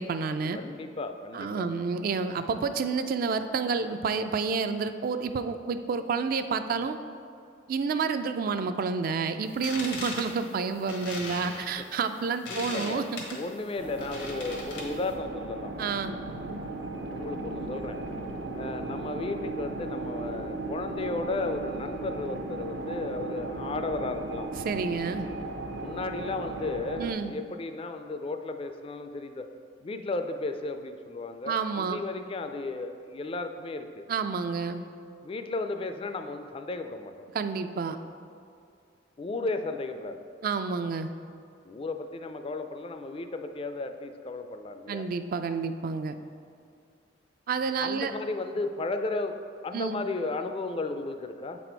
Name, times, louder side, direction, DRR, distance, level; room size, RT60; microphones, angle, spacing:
voice 1, 0.0-0.6 1.3-7.0 7.7-13.2 15.8-16.1 24.6-25.3 27.0-27.3 31.5-32.0 34.1-34.8 37.3-38.0 40.4-41.1 44.9-46.2 47.5-48.1 49.7-50.0, right 5 dB, 50° right, 9 dB, 0.3 m, -29 dB
voice 2, 0.5-1.7 11.8-11.9 12.5-13.0 13.3-15.9 17.1-18.0 18.5-24.5 25.8-29.5 29.8-34.0 35.2-37.3 39.2-40.3 41.6-45.1 47.8-49.4 49.6-51.6, left 3 dB, 30° left, 8 dB, 0.3 m, -34 dB
sound 1, 9.5-15.1, left 2 dB, 90° left, 1.3 m, -39 dB
sound 2, 13.8-27.1, right 2 dB, 70° right, 0.7 m, -36 dB
7.3 x 4.2 x 4.4 m, 2.4 s
head